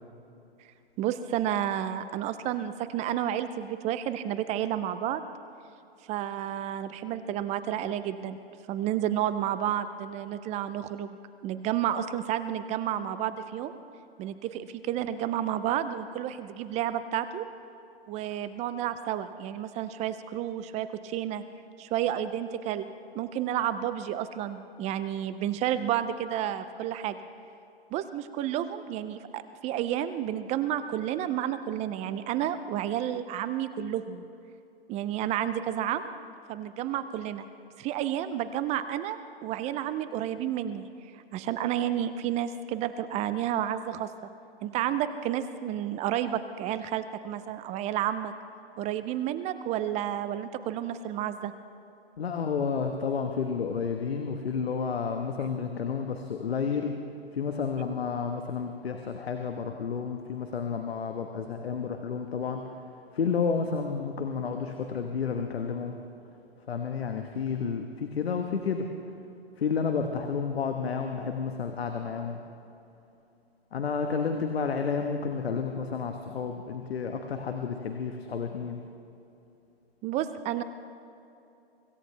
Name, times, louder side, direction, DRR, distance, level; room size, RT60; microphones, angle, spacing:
voice 1, 1.0-5.2 6.1-8.4 8.7-11.2 11.4-13.8 14.2-17.5 18.1-21.4 21.8-22.9 23.1-27.2 27.9-34.2 34.9-36.1 36.5-37.4 37.8-40.9 41.1-44.1 44.6-48.3 48.8-51.5 80.0-80.6, right 11 dB, 20° right, 12 dB, 0.5 m, -31 dB
voice 2, 52.2-56.9 57.3-62.6 63.1-66.0 66.7-68.9 69.6-72.4 73.7-78.8, left 6 dB, 75° left, 5 dB, 1.4 m, -31 dB
25.0 x 16.0 x 3.4 m, 2.7 s
hypercardioid pair, 120°, 31 cm